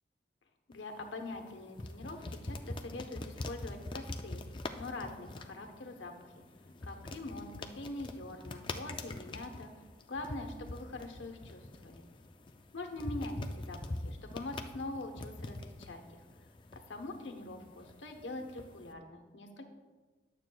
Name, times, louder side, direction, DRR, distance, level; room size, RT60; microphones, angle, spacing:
voice 1, 0.7-4.4 4.8-6.4 6.8-9.7 10.1-12.1 12.7-16.2 16.7-19.6, left 2 dB, 85° left, 4 dB, 1.0 m, -44 dB
sound 1, 0.7-18.9, left 2 dB, 25° left, 0.4 m, -44 dB
11.0 x 7.5 x 2.3 m, 1.3 s
head